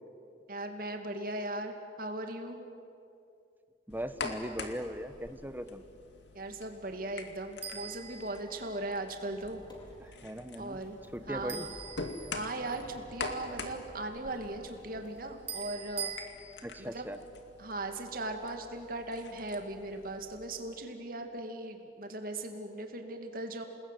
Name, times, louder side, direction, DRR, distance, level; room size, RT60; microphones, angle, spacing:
voice 1, 0.5-2.6 6.3-9.6 10.6-11.0 11.3-11.7 12.3-16.1 16.8-17.1 17.6-23.7, right 2 dB, 50° right, 5 dB, 2.6 m, -38 dB
sound 1, 3.9-20.4, left 3 dB, 80° left, 2.3 m, -45 dB
voice 2, 3.9-5.8 10.0-10.8 11.1-11.7 16.6-17.2, equal, 10° right, 9 dB, 1.1 m, -39 dB
sound 2, 4.2-4.7 7.6-9.0 11.5-12.8 15.5-16.3, right 7 dB, 35° right, 3.4 m, -42 dB
Squeak, 9.2-15.6, equal, 25° left, 3.9 m, -55 dB
28.5 x 20.0 x 9.3 m, 2.6 s
head